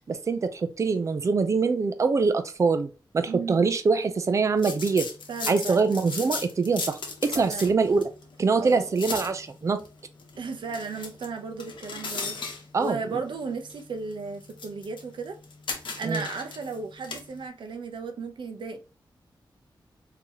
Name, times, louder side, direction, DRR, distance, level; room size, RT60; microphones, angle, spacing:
voice 1, 0.1-2.9 3.1-5.1 5.5-8.0 8.4-9.8 12.7-13.0 16.0-16.2, right 4 dB, 40° right, 0.4 m, -24 dB
voice 2, 3.3-3.6 5.3-5.9 7.3-7.7 8.6-9.2 10.4-12.4 12.8-15.4 16.0-18.8, right 4 dB, 80° right, 0.7 m, -35 dB
sound 1, 4.6-17.5, left 4 dB, 85° left, 0.9 m, -39 dB
3.8 x 2.8 x 2.9 m
wide cardioid pair, 150°, 8 cm